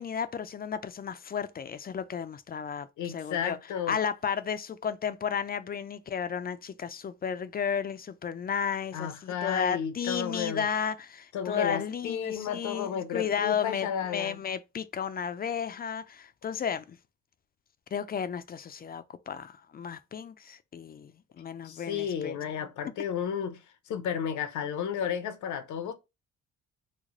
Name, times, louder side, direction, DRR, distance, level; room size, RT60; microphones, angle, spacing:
voice 1, 0.0-3.6 3.9-17.0 17.9-22.4, left 7 dB, 30° left, 0.4 m, -33 dB
voice 2, 3.0-4.0 8.9-10.7 11.3-14.4 21.6-25.9, left 8 dB, 75° left, 0.7 m, -33 dB
3.2 x 2.1 x 3.6 m
cardioid pair, 90°, 30 cm